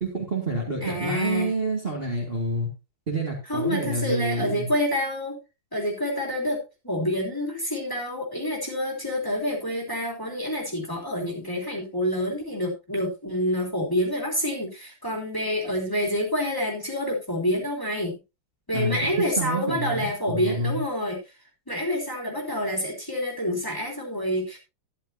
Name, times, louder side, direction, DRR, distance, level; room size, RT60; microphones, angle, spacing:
voice 1, 0.0-2.7 3.1-4.7 18.7-19.1 19.4-20.8, right 2 dB, 25° right, -2 dB, 2.3 m, -28 dB
voice 2, 0.8-1.5 3.5-5.4 5.7-18.1 18.7-21.2 21.7-24.6, left 1 dB, 10° left, -1 dB, 3.1 m, -27 dB
12.0 x 10.5 x 2.8 m, 0.27 s
omnidirectional pair, 2.4 m